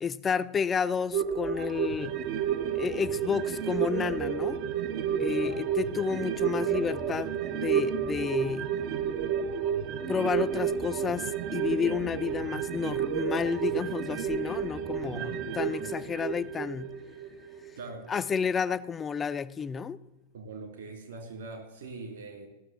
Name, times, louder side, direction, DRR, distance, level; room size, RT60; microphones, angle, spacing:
voice 1, 0.0-2.2 2.7-4.6 5.2-8.8 10.1-17.0 18.1-20.0, left 6 dB, 20° left, 0.5 m, -31 dB
sound 1, 1.1-17.9 18.2-18.3, right 8 dB, 45° right, 0.7 m, -31 dB
voice 2, 15.1-15.9 17.7-18.1 20.3-22.5, right 3 dB, 60° right, 2.9 m, -42 dB
15.0 x 6.7 x 7.5 m
figure-of-eight pair, 90°, 0 cm